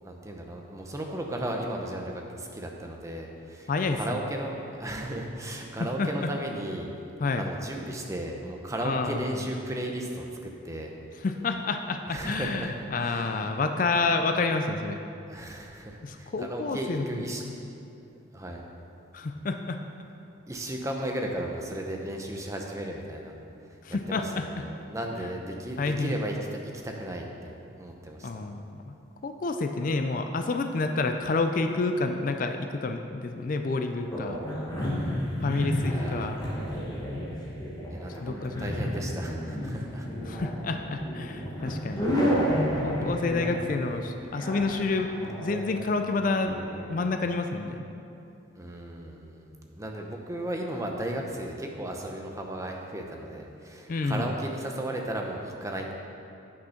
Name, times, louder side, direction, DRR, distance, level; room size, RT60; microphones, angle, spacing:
voice 1, 0.0-6.9 7.4-10.9 12.1-13.5 15.3-17.4 18.3-18.7 20.5-23.3 23.7-23.8 24.1-28.4 34.8-35.4 35.8-36.3 37.9-40.1 42.3-42.5 48.5-49.5 49.7-55.9, right 1 dB, 15° right, 1 dB, 0.7 m, -35 dB
voice 2, 3.7-4.0 6.0-6.3 7.2-7.5 8.8-9.2 11.2-15.0 16.0-17.6 19.1-19.8 23.8-24.4 25.8-26.1 28.2-28.9 29.2-34.4 35.4-36.4 38.2-38.7 40.3-42.1 42.8-45.1 45.3-46.6 46.9-47.8 53.9-54.3, left 3 dB, 40° left, 6 dB, 0.4 m, -29 dB
sound 1, 34.1-46.8, equal, 20° left, 1.4 m, -31 dB
8.6 x 6.3 x 5.7 m, 2.7 s
head